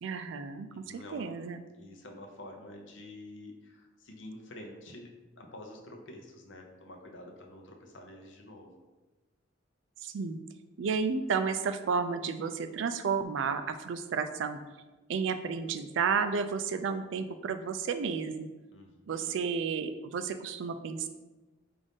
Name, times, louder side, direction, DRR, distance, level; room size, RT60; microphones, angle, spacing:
voice 1, 0.0-1.6 10.0-10.4 10.8-14.6 15.1-18.5 19.1-21.1, right 5 dB, 65° right, 9 dB, 0.3 m, -32 dB
voice 2, 0.7-1.3 1.8-5.1 5.4-8.8 18.7-19.4, left 1 dB, 65° left, 2 dB, 0.7 m, -48 dB
5.3 x 2.5 x 3.5 m, 1.2 s
head